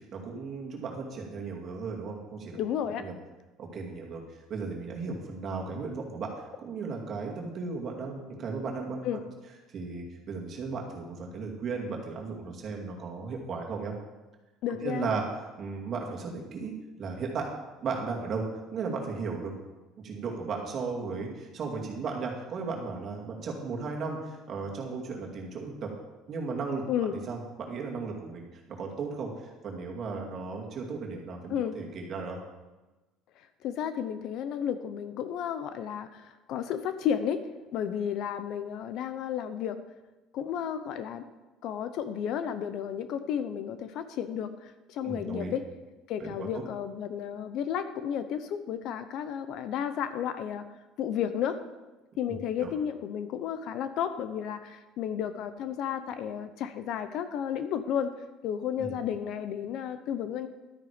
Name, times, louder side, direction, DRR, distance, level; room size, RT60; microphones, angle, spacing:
voice 1, 0.0-2.6 3.0-3.1 3.6-4.2 4.5-9.2 9.7-13.9 14.8-15.2 15.6-16.7 17.0-17.5 17.8-18.4 18.7-19.5 20.0-25.9 26.3-28.5 28.8-32.4 45.0-45.5 46.2-46.6 52.2-52.7 58.8-58.9, right 4 dB, 35° right, 0 dB, 2.3 m, -35 dB
voice 2, 2.6-3.1 9.0-9.2 14.6-15.1 26.9-27.1 31.5-31.8 33.6-37.5 37.7-39.8 40.3-41.3 41.6-45.6 46.1-50.6 51.0-51.6 52.2-58.1 58.4-60.5, left 9 dB, 50° left, 11 dB, 0.7 m, -32 dB
12.5 x 9.3 x 5.1 m, 1.1 s
cardioid pair, 160°, 0 cm